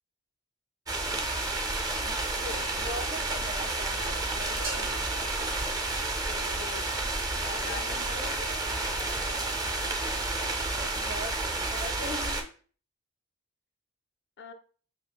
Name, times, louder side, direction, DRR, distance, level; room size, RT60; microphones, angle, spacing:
sound 1, 0.9-12.4, right 2 dB, 20° right, 0.4 m, -31 dB
voice 1, 2.0-5.3 6.2-6.6 7.3-8.6 9.0-9.6 10.8-12.5, equal, 55° right, 3 dB, 1.1 m, -42 dB
sound 2, 4.6-6.6, right 4 dB, 85° right, 1.4 m, -43 dB
voice 2, 7.7-9.3 14.4-14.5, left 5 dB, 55° left, 7 dB, 0.4 m, -44 dB
5.4 x 2.3 x 2.3 m, 0.42 s
head